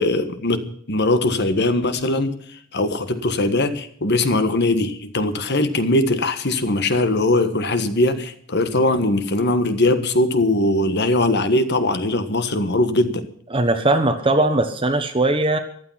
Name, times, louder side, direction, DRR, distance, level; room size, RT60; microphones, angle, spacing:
voice 1, 0.0-2.4 2.7-13.3, left 2 dB, 50° left, 10 dB, 1.5 m, -20 dB
voice 2, 13.5-15.6, right 2 dB, 25° right, 6 dB, 1.1 m, -19 dB
15.0 x 12.0 x 5.8 m, 0.63 s
head